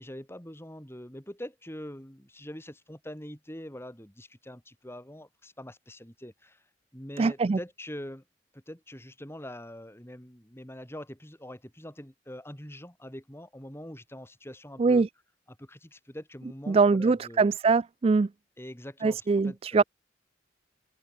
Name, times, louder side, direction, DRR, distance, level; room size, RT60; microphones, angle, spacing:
voice 1, 0.0-6.6 6.9-8.2 8.5-15.0 15.5-17.5 18.6-19.8, equal, 15° left, 6.1 m, -44 dB
voice 2, 7.2-7.6 14.8-15.1 16.7-18.3 19.0-19.8, right 4 dB, 30° right, 0.3 m, -23 dB
head